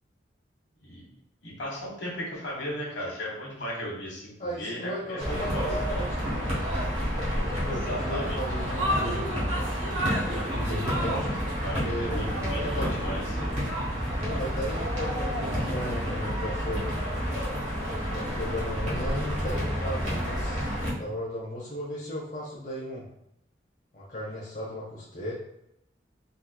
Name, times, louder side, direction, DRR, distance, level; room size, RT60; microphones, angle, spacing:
voice 1, 1.4-5.7 7.7-8.4 11.6-13.2, equal, 70° left, -3 dB, 1.3 m, -35 dB
voice 2, 4.4-6.3 7.3-9.2 10.1-11.3 11.8-12.3 12.5-12.9 14.2-16.9 17.9-23.0 23.9-25.3, equal, 45° left, -6 dB, 0.7 m, -36 dB
sound 1, 5.2-20.9, equal, 40° right, 1.2 m, -29 dB
3.7 x 2.8 x 2.3 m, 0.80 s
head